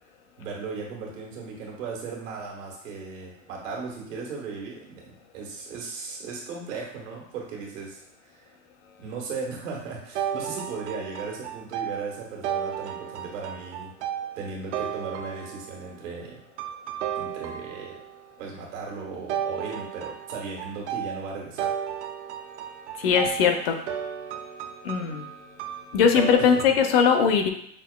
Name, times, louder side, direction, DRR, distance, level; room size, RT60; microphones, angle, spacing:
voice 1, 0.4-8.5 9.0-13.9 14.4-16.4 17.2-18.0 18.4-21.7 26.4-26.6, right 4 dB, 80° right, -2 dB, 1.5 m, -37 dB
sound 1, 10.2-15.9 16.6-18.2 19.3-26.7, right 9 dB, 65° right, 0.5 m, -34 dB
voice 2, 23.0-23.8 24.8-25.3 25.9-27.5, left 6 dB, 50° left, 5 dB, 0.5 m, -20 dB
5.9 x 2.5 x 2.2 m, 0.70 s
supercardioid pair, 165°, 37 cm